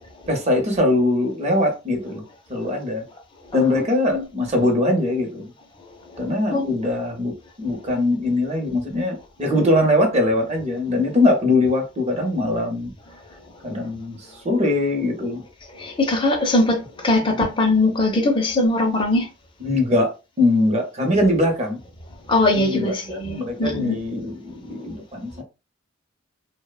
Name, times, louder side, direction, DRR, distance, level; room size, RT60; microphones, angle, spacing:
voice 1, 0.3-2.2 2.5-3.0 3.5-5.5 6.2-7.3 7.6-12.9 13.6-14.2 14.4-15.4 17.3-17.4 19.6-21.8 22.5-25.4, left 1 dB, 35° right, 0.6 m, -21 dB
voice 2, 15.8-19.3 22.3-24.0, left 2 dB, 25° left, 0.5 m, -21 dB
2.7 x 2.0 x 2.3 m
head